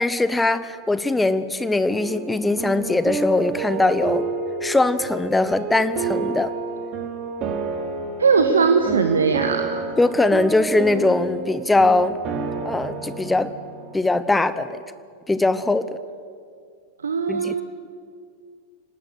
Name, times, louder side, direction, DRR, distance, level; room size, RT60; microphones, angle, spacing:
voice 1, 0.0-4.3 4.6-6.5 10.0-12.2 12.6-13.5 13.9-14.8 15.3-15.9 17.3-17.6, left 2 dB, 10° left, 14 dB, 0.9 m, -21 dB
sound 1, 1.9-14.0, right 4 dB, 35° right, 3.3 m, -30 dB
voice 2, 8.2-9.8 17.0-17.6, right 5 dB, 70° right, 7 dB, 1.4 m, -19 dB
26.5 x 19.0 x 8.1 m, 2.2 s
figure-of-eight pair, 90°, 0 cm